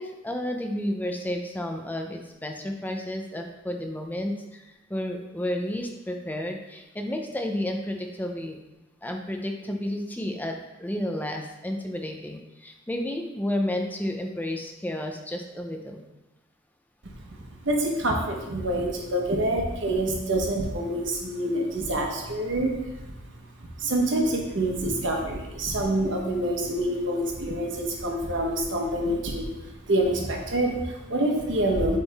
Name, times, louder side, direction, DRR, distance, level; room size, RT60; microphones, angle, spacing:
voice 1, 0.0-8.6 9.0-16.0, left 1 dB, 10° left, 3 dB, 0.6 m, -31 dB
voice 2, 17.6-32.0, right 1 dB, 65° right, 0 dB, 1.2 m, -27 dB
8.2 x 3.6 x 3.5 m, 1.0 s
head